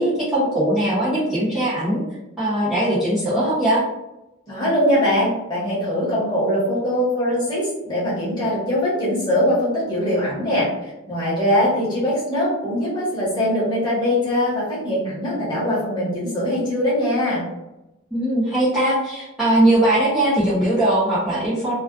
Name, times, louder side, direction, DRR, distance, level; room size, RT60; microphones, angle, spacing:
voice 1, 0.0-2.0 2.4-3.8 18.1-21.7, right 1 dB, ahead, -13 dB, 0.5 m, -20 dB
voice 2, 4.5-17.4, left 1 dB, 20° left, -8 dB, 1.0 m, -22 dB
2.3 x 2.3 x 2.3 m, 0.94 s
head